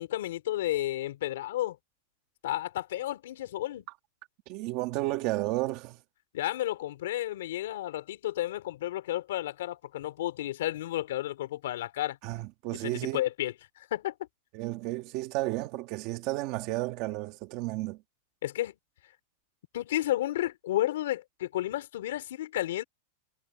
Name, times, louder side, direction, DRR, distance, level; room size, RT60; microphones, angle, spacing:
voice 1, 0.0-1.8 2.4-3.8 6.3-12.2 12.8-14.1 18.4-18.7 19.7-22.8, left 14 dB, 65° left, 3.3 m, -32 dB
voice 2, 4.5-6.0 12.2-13.2 14.5-18.0, right 19 dB, 35° right, 1.8 m, -32 dB
supercardioid pair, 175°, 0 cm